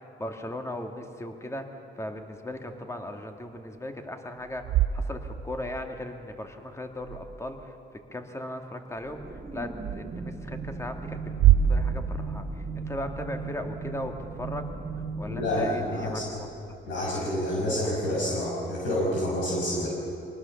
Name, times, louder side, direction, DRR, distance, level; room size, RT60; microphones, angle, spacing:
voice 1, 0.2-1.7 2.0-4.6 4.9-7.7 8.1-14.7 15.2-16.5, left 1 dB, 15° left, 4 dB, 2.2 m, -37 dB
sound 1, 4.4-5.8 7.0-7.7 9.8-10.0 11.3-13.2, right 10 dB, 80° right, 0.8 m, -26 dB
sound 2, 9.0-17.2, right 4 dB, 25° right, 2.1 m, -38 dB
voice 2, 15.3-16.2 16.8-19.9, left 1 dB, 75° left, -5 dB, 6.3 m, -28 dB
25.0 x 19.0 x 7.2 m, 2.7 s
cardioid pair, 90°, 20 cm